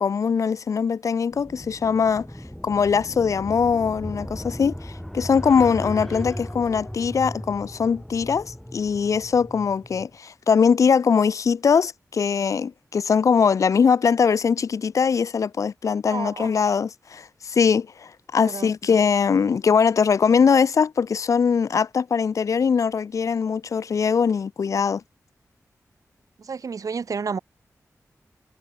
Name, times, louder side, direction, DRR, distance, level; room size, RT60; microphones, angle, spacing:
voice 1, 0.0-2.3 2.6-25.0, left 6 dB, 65° left, 0.4 m, -21 dB
sound 1, 1.3-10.1, equal, 5° left, 1.8 m, -36 dB
voice 2, 16.1-16.5 18.4-18.7 26.4-27.4, right 5 dB, 75° right, 2.3 m, -30 dB
wide cardioid pair, 85°, 6 cm